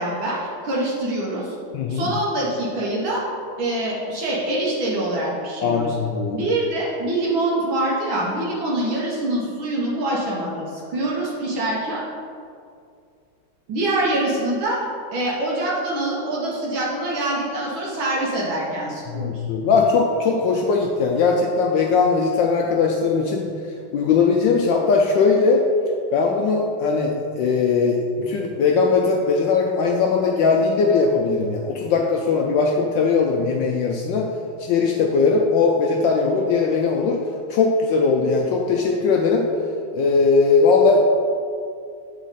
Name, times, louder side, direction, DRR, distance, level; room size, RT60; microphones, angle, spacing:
voice 1, 0.0-1.6 1.9-3.2 3.6-6.0 6.3-12.0 13.7-14.8 15.1-19.4, right 1 dB, 70° right, -4 dB, 1.7 m, -25 dB
voice 2, 1.7-2.1 5.6-6.4 19.1-23.5 23.9-25.6 26.1-34.3 34.6-37.2 37.5-39.5 39.9-41.0, left 4 dB, 75° left, 0 dB, 1.1 m, -19 dB
7.3 x 4.1 x 4.0 m, 2.4 s
omnidirectional pair, 2.3 m